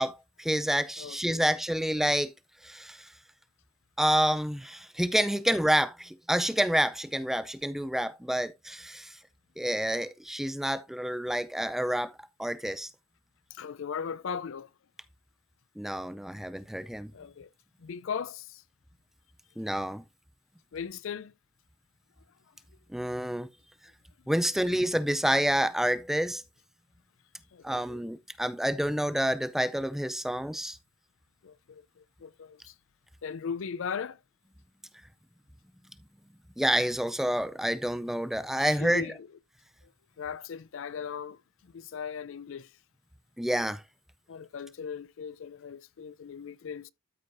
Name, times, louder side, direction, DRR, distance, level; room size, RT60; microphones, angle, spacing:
voice 1, 0.0-2.3 2.6-3.1 4.0-9.2 9.6-12.1 12.4-12.9 15.8-17.1 19.6-20.0 22.9-23.5 24.3-26.4 27.6-30.8 36.6-39.1 43.4-43.8, equal, ahead, 0.4 m, -28 dB
voice 2, 1.0-1.5 13.5-14.7 17.1-17.5 17.8-18.6 20.7-21.3 27.5-28.0 31.4-32.7 33.2-34.2 38.6-39.2 39.8-39.9 40.2-42.7 44.3-46.9, left 6 dB, 65° left, 0.4 m, -38 dB
13.0 x 4.7 x 2.6 m
head